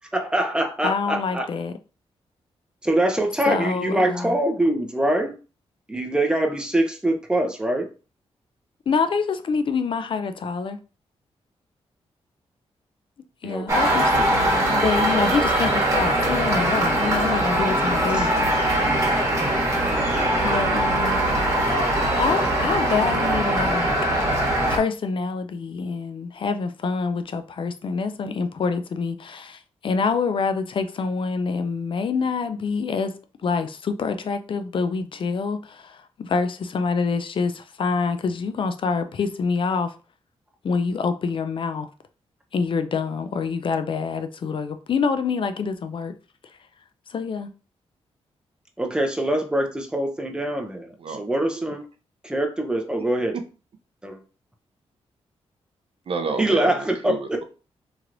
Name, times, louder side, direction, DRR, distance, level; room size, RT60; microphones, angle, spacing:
voice 1, 0.1-1.5 2.8-5.3 5.9-7.9 13.4-13.9 18.1-18.3 19.9-20.3 48.8-51.8 52.2-53.3 54.0-54.2 56.4-57.4, right 1 dB, 10° right, 0.6 m, -24 dB
voice 2, 0.8-1.7 3.5-4.4 8.9-10.8 13.4-18.5 20.4-21.3 22.2-23.9 24.7-33.1 33.4-39.9 40.6-41.9 42.5-46.1 47.1-47.5, left 5 dB, 50° left, 0.3 m, -26 dB
sound 1, 13.7-24.8, right 1 dB, 25° right, 1.4 m, -21 dB
voice 3, 56.1-57.4, right 4 dB, 55° right, 0.5 m, -29 dB
3.0 x 2.9 x 2.5 m
cardioid pair, 90°, 11 cm